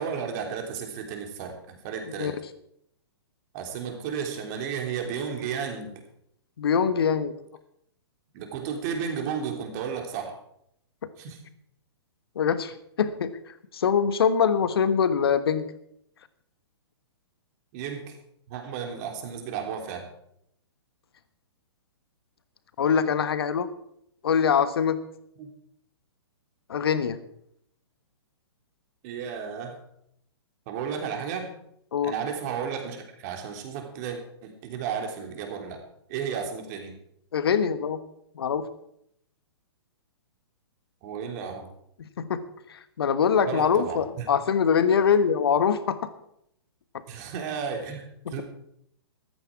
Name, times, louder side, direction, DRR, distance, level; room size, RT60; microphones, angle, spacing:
voice 1, 0.0-2.4 3.5-6.0 8.3-10.3 11.2-11.4 17.7-18.1 18.5-20.1 25.4-25.5 29.0-29.8 30.7-31.5 32.0-35.8 36.1-37.0 41.0-41.7 43.5-44.3 47.1-48.4, right 7 dB, 40° right, 3 dB, 3.3 m, -33 dB
voice 2, 6.6-7.3 12.3-13.3 13.7-15.6 22.8-23.7 24.2-25.0 26.7-27.2 31.9-32.1 37.3-38.0 38.3-38.7 42.2-42.4 42.7-46.1, left 7 dB, 65° left, 12 dB, 1.3 m, -23 dB
14.0 x 13.0 x 4.7 m, 0.73 s
figure-of-eight pair, 120°, 14 cm